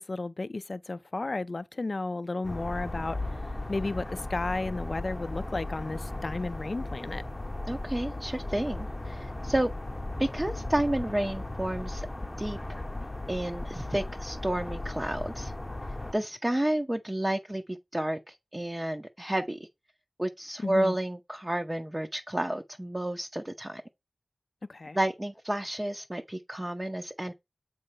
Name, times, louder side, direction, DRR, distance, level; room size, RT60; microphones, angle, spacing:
voice 1, 0.0-3.2 3.7-7.2 20.6-21.0 24.7-25.0, left 2 dB, 50° left, 0.4 m, -33 dB
sound 1, 2.4-16.1, left 2 dB, 25° left, 0.9 m, -36 dB
voice 2, 7.7-9.7 10.2-12.1 12.4-12.6 13.3-15.5 16.1-19.7 20.2-23.8 24.9-27.3, right 1 dB, 20° right, 0.6 m, -31 dB
7.4 x 3.2 x 5.4 m
wide cardioid pair, 60°, 0 cm